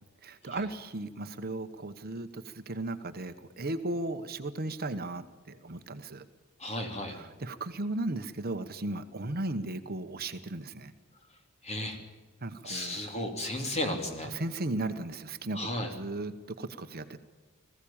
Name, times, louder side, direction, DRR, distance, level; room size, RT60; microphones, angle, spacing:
voice 1, 0.2-6.3 7.1-10.9 12.4-13.0 14.3-17.2, right 2 dB, 45° right, 9 dB, 1.1 m, -36 dB
voice 2, 6.6-7.2 11.6-12.0 12.6-14.3 15.5-15.9, left 1 dB, 30° left, 4 dB, 3.2 m, -34 dB
20.5 x 15.5 x 8.8 m, 1.3 s
head